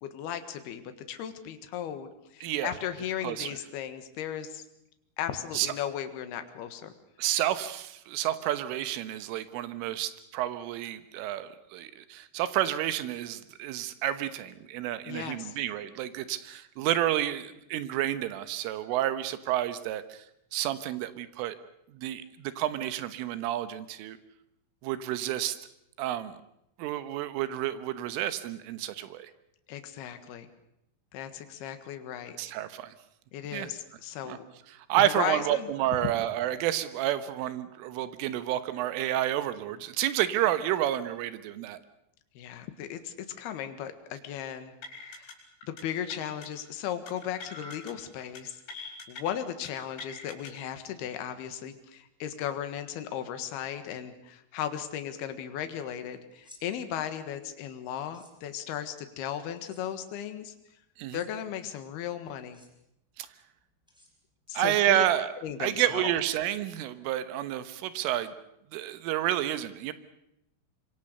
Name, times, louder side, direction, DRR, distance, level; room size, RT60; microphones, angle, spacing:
voice 1, 0.0-4.6 5.2-6.9 15.1-15.5 29.7-30.5 31.1-32.4 33.3-34.4 35.0-35.7 36.0-36.1 42.3-45.3 45.6-48.6 49.1-60.5 61.1-62.6 64.5-65.0 65.4-66.1, left 10 dB, 65° left, 9 dB, 3.2 m, -36 dB
voice 2, 2.4-2.7 3.2-3.6 5.5-5.7 7.2-20.3 20.5-21.6 21.9-24.2 24.8-25.6 26.0-26.4 26.8-29.3 32.4-32.9 33.5-33.7 34.2-34.4 34.7-41.8 61.0-61.2 63.2-63.3 64.6-65.3 65.6-68.3 68.7-69.9, right 12 dB, 80° right, 12 dB, 3.7 m, -30 dB
sound 1, 44.8-45.3 45.6-45.8 46.1-46.5 47.1-47.9 48.2-48.4 48.7-49.2 49.6-50.5, left 3 dB, 85° left, 7.6 m, -43 dB
sound 2, 56.3-56.6 58.0-58.3 59.6-59.8 61.0-61.3 62.4-62.7 63.9-64.5, left 2 dB, ahead, 4.8 m, -56 dB
25.5 x 24.0 x 6.7 m, 0.81 s
omnidirectional pair, 5.7 m